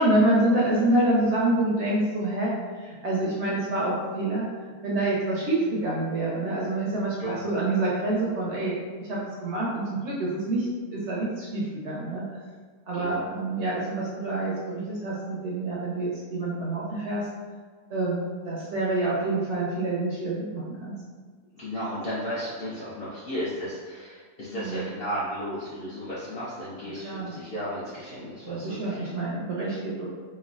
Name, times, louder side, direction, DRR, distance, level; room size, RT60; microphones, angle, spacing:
voice 1, 0.0-2.5 2.8-4.5 4.8-10.7 10.9-12.2 12.9-17.3 17.9-20.9 24.5-24.9 27.0-27.3 28.4-30.1, right 2 dB, 65° right, -5 dB, 0.7 m, -27 dB
voice 2, 12.9-13.2 16.9-17.1 21.5-29.1, equal, 65° left, -9 dB, 0.6 m, -34 dB
3.1 x 2.2 x 2.4 m, 1.5 s
omnidirectional pair, 1.5 m